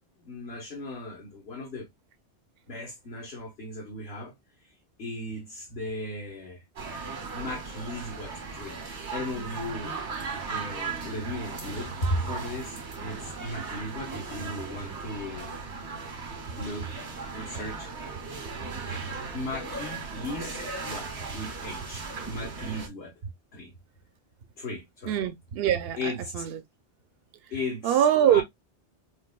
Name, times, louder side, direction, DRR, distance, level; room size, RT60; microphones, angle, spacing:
voice 1, 0.2-1.9 2.7-4.3 5.0-6.6 7.3-8.8 9.1-9.9 10.5-15.5 16.5-17.0 17.3-17.9 19.3-23.1 23.5-23.7 24.6-25.2 26.0-26.2 27.5-28.4, left 1 dB, 65° left, 1.5 m, -36 dB
sound 1, 6.8-22.9, right 4 dB, 85° right, 1.8 m, -37 dB
voice 2, 25.1-26.6 27.8-28.4, right 10 dB, 65° right, 0.8 m, -24 dB
4.7 x 2.6 x 2.2 m
omnidirectional pair, 1.1 m